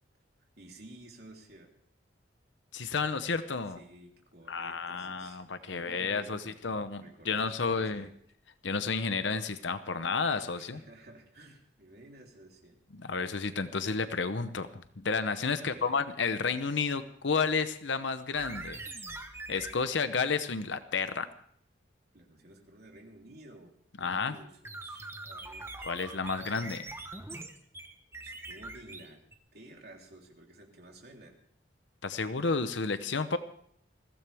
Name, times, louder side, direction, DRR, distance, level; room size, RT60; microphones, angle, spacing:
voice 1, 0.6-1.7 3.7-6.6 7.0-8.1 10.5-12.8 15.6-16.0 22.1-23.7 24.0-25.7 28.2-29.3 29.5-31.4, right 1 dB, 55° right, 0 dB, 3.5 m, -53 dB
voice 2, 2.7-3.8 4.5-8.1 8.6-10.8 12.9-14.7 15.0-18.8 19.5-21.3 24.0-24.4 25.8-26.9 32.0-33.4, left 4 dB, 75° left, 11 dB, 0.8 m, -31 dB
sound 1, 18.3-19.8 24.6-29.3, right 2 dB, 15° right, 1.1 m, -43 dB
22.0 x 16.0 x 3.5 m, 0.66 s
head